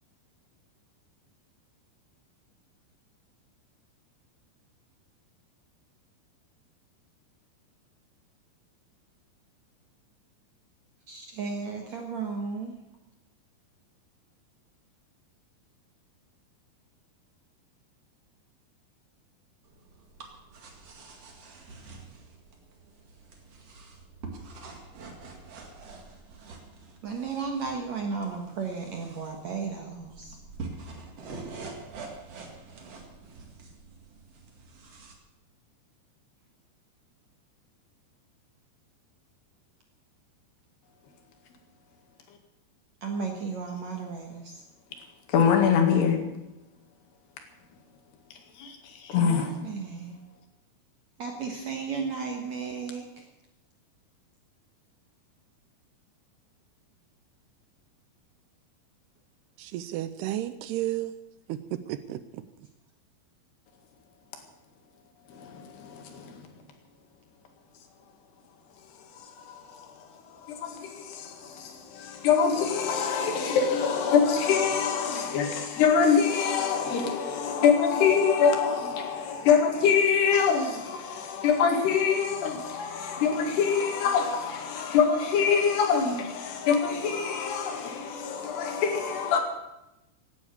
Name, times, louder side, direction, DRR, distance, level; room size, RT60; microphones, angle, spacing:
voice 1, 11.1-12.8 27.0-30.4 43.0-44.6 49.2-50.2 51.2-53.3, right 5 dB, 60° right, 2.0 m, -34 dB
sound 1, 19.6-35.1, right 3 dB, 45° right, 2.7 m, -46 dB
voice 2, 45.3-46.2 48.3-49.5 65.3-66.5 68.9-89.4, left 6 dB, 70° left, 4.0 m, -25 dB
voice 3, 59.6-61.2 61.5-62.4, right 13 dB, 80° right, 2.6 m, -33 dB
17.0 x 9.9 x 8.2 m
omnidirectional pair, 5.0 m